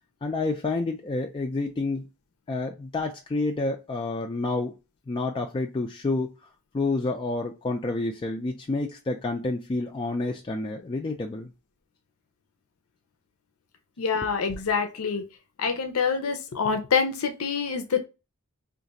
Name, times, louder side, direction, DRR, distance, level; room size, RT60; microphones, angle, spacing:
voice 1, 0.2-2.1 2.5-4.7 5.1-6.3 6.7-11.5, left 3 dB, 25° left, 0.3 m, -29 dB
voice 2, 14.0-15.2 15.6-18.1, left 5 dB, 75° left, 0.6 m, -26 dB
2.5 x 2.4 x 3.9 m
head